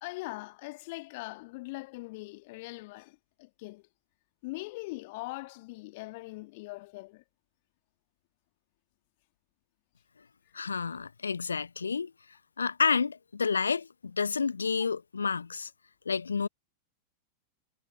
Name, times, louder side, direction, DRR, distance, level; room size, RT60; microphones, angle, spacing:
voice 1, 0.0-3.8 4.4-7.2, left 23 dB, 50° left, 1.7 m, -41 dB
voice 2, 10.5-12.1 12.6-15.7 16.0-16.5, left 5 dB, 75° left, 1.2 m, -30 dB
figure-of-eight pair, 90°, 0 cm